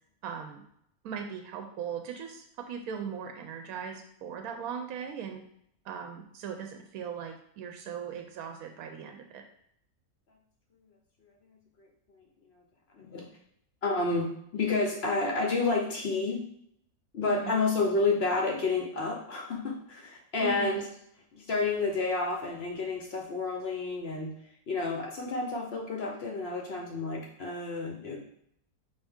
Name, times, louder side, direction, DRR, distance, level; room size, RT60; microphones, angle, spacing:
voice 1, 0.2-0.6 1.0-5.4 5.8-9.4 17.2-17.5 20.4-20.8, right 7 dB, 70° right, 4 dB, 1.0 m, -39 dB
voice 2, 11.5-11.9 12.9-13.3 13.8-16.4 17.1-20.9 21.3-24.3 24.7-28.2, left 3 dB, 55° left, 1 dB, 0.7 m, -30 dB
5.1 x 2.7 x 3.5 m, 0.71 s
omnidirectional pair, 1.7 m